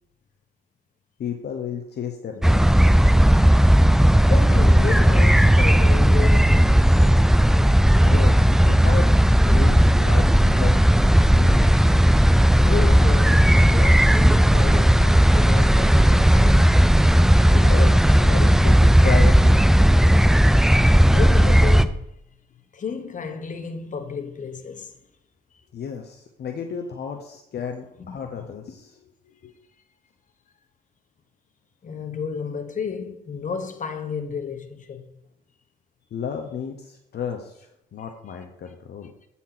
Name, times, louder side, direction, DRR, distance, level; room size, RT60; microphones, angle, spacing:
voice 1, 1.2-2.6 8.0-9.1 9.3-10.8 11.3-11.8 17.2-20.2 25.7-29.0 29.4-29.5 36.1-39.1, left 7 dB, 55° left, 0.9 m, -33 dB
sound 1, 2.4-21.8, equal, ahead, 0.4 m, -15 dB
voice 2, 4.3-6.7 8.4-8.5 12.6-16.7 21.1-22.0 22.7-24.9 31.8-35.0, left 6 dB, 40° left, 1.2 m, -32 dB
8.4 x 4.3 x 5.9 m
cardioid pair, 90°, 20 cm